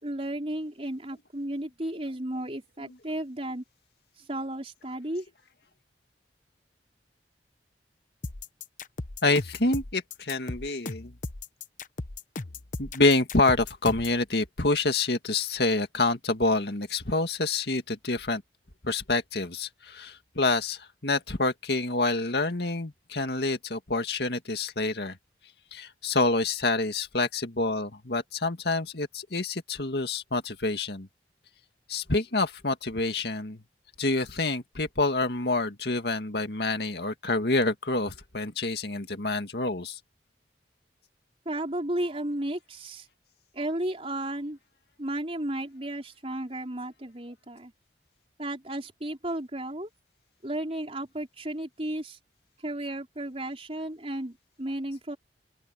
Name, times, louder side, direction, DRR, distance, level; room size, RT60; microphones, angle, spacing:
voice 1, 0.0-3.6 4.2-5.3 41.4-43.1 43.5-44.6 45.0-47.7 48.4-49.9 50.4-52.2 52.6-55.2, right 1 dB, 35° right, 4.8 m, -33 dB
sound 1, 8.2-14.2, left 3 dB, 45° left, 1.0 m, -37 dB
voice 2, 9.2-11.1 12.8-18.4 18.8-25.2 25.7-31.1 31.9-33.6 34.0-40.0, left 2 dB, 65° left, 2.1 m, -27 dB
open air
head